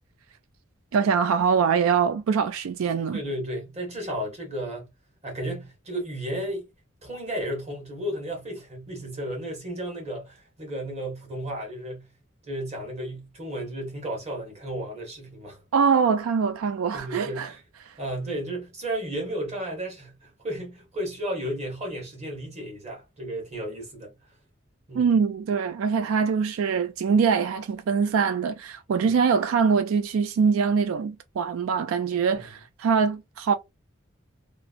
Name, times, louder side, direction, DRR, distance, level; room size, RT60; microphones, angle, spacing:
voice 1, 0.9-3.2 15.7-17.5 17.9-18.0 24.9-33.6, right 6 dB, 85° right, 0.3 m, -23 dB
voice 2, 3.1-4.9 5.2-6.7 7.0-12.1 12.5-15.6 16.9-17.6 18.0-24.1 24.9-25.2 29.0-29.1 32.3-32.4, right 1 dB, 30° right, 1.3 m, -33 dB
3.0 x 2.5 x 2.4 m
head